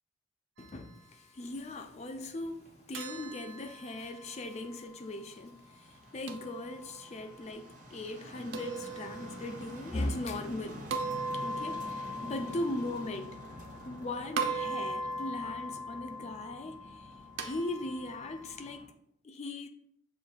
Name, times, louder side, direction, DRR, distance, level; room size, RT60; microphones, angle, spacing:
voice 1, 0.6-17.1 17.4-18.9 19.2-19.7, left 2 dB, 35° left, 0.3 m, -39 dB
sound 1, 1.4-18.9, left 1 dB, 45° right, 0.7 m, -49 dB
sound 2, 2.9-5.0 6.3-7.3 8.5-9.7 10.9-14.0 14.4-18.8, right 2 dB, 85° right, 0.5 m, -39 dB
6.8 x 2.4 x 2.3 m
head